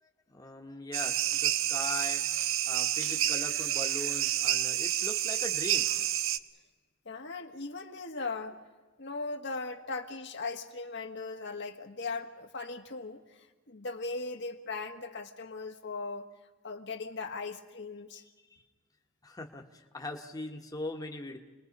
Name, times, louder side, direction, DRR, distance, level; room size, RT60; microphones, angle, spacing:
voice 1, 0.0-2.2 2.6-5.9 9.8-9.9 18.5-18.6 19.2-21.4, left 2 dB, 20° left, 2 dB, 1.4 m, -40 dB
sound 1, 0.9-6.4, right 11 dB, 80° right, 0.7 m, -29 dB
voice 2, 7.0-8.6 9.0-16.3 16.6-18.2, left 3 dB, 60° left, 5 dB, 1.5 m, -38 dB
29.0 x 20.5 x 5.4 m, 1.2 s
head